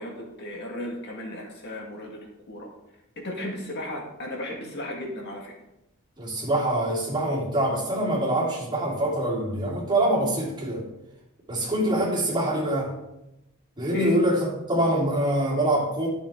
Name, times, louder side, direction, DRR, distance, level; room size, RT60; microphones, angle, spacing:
voice 1, 0.0-2.7 3.2-5.5 13.9-14.2, left 2 dB, 50° left, 0 dB, 1.8 m, -35 dB
voice 2, 6.2-10.8 11.5-12.9 13.8-16.1, right 1 dB, 20° right, -6 dB, 3.4 m, -25 dB
12.5 x 6.8 x 3.6 m, 0.91 s
head